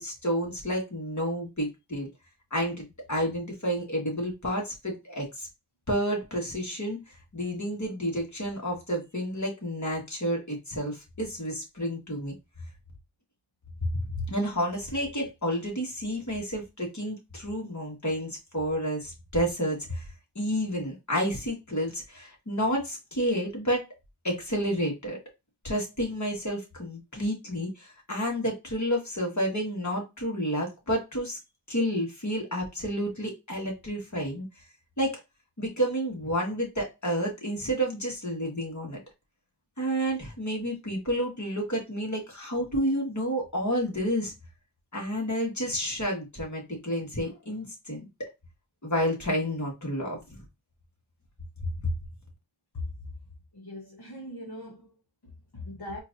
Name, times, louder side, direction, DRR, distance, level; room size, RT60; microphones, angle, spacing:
voice 1, 0.0-2.1 2.5-5.5 5.9-7.0 7.3-12.3 13.9-14.0 14.3-20.1 20.4-23.9 24.2-25.2 25.6-31.4 31.7-34.5 35.0-35.2 35.6-39.0 39.8-44.3 44.9-48.3 48.8-50.4 51.8-51.9, equal, 40° left, 1.7 m, -30 dB
voice 2, 52.7-53.1 53.5-56.0, left 2 dB, 60° left, 1.1 m, -40 dB
4.4 x 2.7 x 2.6 m
wide cardioid pair, 40°, 43 cm